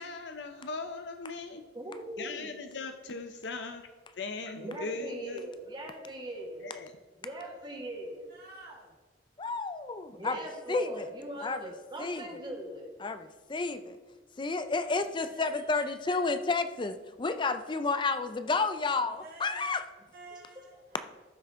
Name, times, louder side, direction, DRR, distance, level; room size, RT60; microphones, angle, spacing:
voice 1, 0.0-1.6 2.2-3.9 4.2-5.5 6.6-6.9, left 3 dB, 70° left, 7 dB, 0.6 m, -39 dB
voice 2, 1.7-2.5 4.6-6.7 7.2-8.3 10.1-12.9, right 1 dB, 25° right, 1 dB, 1.6 m, -41 dB
voice 3, 7.2-7.7 8.3-9.0 11.3-11.4 11.9-12.2 13.2-13.3 15.3-16.3 19.1-19.7 20.1-21.0, right 2 dB, 55° right, -3 dB, 1.9 m, -51 dB
voice 4, 9.4-10.4 10.7-11.1 11.4-11.6 12.0-12.2 13.0-14.0 14.4-19.8, left 3 dB, 25° left, 10 dB, 0.4 m, -31 dB
13.5 x 5.8 x 3.6 m, 1.3 s
head